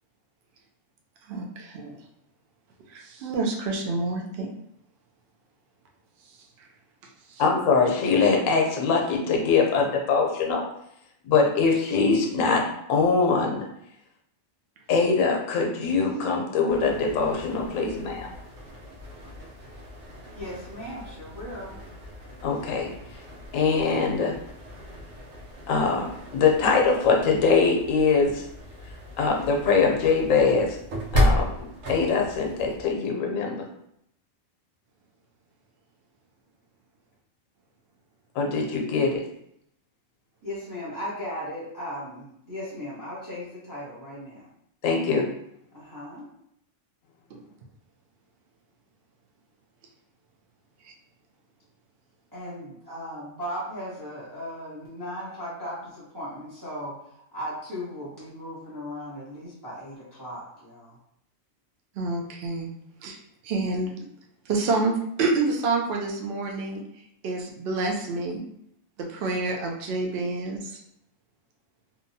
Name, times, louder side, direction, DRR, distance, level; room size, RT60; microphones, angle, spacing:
voice 1, 1.2-2.0 2.9-4.5 6.2-6.7 7.2-7.4 47.3-47.4 50.8-50.9 61.9-62.7 63.0-64.1 64.4-68.4 69.0-70.8, right 3 dB, 65° right, 1 dB, 0.7 m, -28 dB
voice 2, 7.4-10.7 11.2-12.6 12.9-13.7 14.9-18.3 22.4-22.9 23.5-24.4 25.7-28.4 29.2-30.8 31.1-33.7 38.4-39.2 44.8-45.3, left 4 dB, 80° left, 1 dB, 1.0 m, -23 dB
sound 1, 16.7-32.9, left 1 dB, 80° right, 1.1 m, -34 dB
voice 3, 20.3-21.8 40.4-44.5 45.7-46.3 52.3-61.0, equal, 20° right, -8 dB, 0.6 m, -37 dB
2.8 x 2.2 x 2.6 m, 0.75 s
omnidirectional pair, 1.4 m